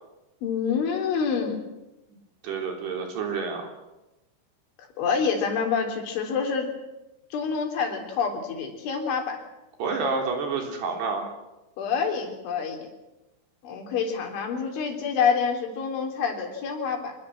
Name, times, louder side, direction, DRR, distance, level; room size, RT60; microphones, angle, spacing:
voice 1, 0.4-1.6 5.0-6.7 7.3-9.5 11.8-12.9 13.6-17.2, left 6 dB, 80° left, 3 dB, 5.8 m, -27 dB
voice 2, 2.4-3.7 9.8-11.3, right 4 dB, 60° right, 3 dB, 5.4 m, -29 dB
25.5 x 21.0 x 7.7 m, 1.0 s
omnidirectional pair, 5.4 m